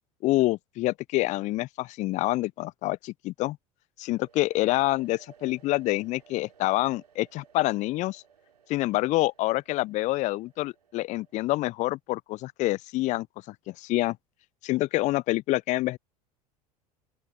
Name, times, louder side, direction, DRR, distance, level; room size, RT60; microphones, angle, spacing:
voice 1, 0.2-3.6 4.0-8.2 8.7-14.2 14.6-16.0, left 18 dB, 40° left, 0.4 m, -27 dB
sound 1, 4.2-11.8, right 7 dB, 80° right, 3.0 m, -58 dB
open air
figure-of-eight pair, 75°, 20 cm